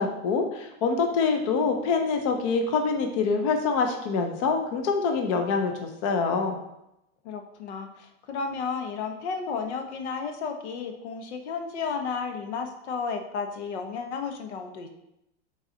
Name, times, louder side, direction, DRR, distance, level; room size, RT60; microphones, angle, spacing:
voice 1, 0.0-6.6, left 4 dB, 30° left, 4 dB, 0.4 m, -25 dB
voice 2, 7.2-14.9, left 5 dB, 80° left, 6 dB, 1.0 m, -33 dB
6.3 x 4.1 x 3.8 m, 0.87 s
supercardioid pair, 180°, 33 cm